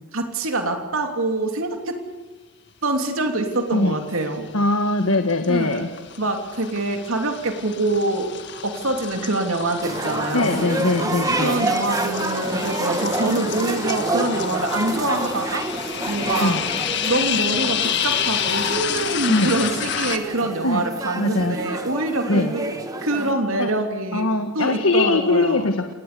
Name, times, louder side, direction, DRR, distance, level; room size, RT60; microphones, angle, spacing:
voice 1, 0.0-2.0 2.8-4.5 5.5-5.9 6.2-8.3 8.6-10.7 11.4-15.7 16.1-16.6 17.0-22.7 23.0-24.3 24.5-25.7, right 2 dB, 70° right, 4 dB, 3.0 m, -25 dB
sound 1, 3.8-4.3 4.7-20.2, left 8 dB, 50° left, 1.7 m, -29 dB
voice 2, 4.5-5.9 10.3-11.7 16.4-16.6 19.3-19.5 20.6-20.8 21.2-21.6 22.3-22.5 23.6-23.7 24.1-25.9, left 2 dB, 75° left, 6 dB, 1.5 m, -21 dB
sound 2, 9.8-23.3, right 2 dB, 15° right, 1.8 m, -28 dB
29.0 x 18.5 x 6.9 m, 1.3 s
head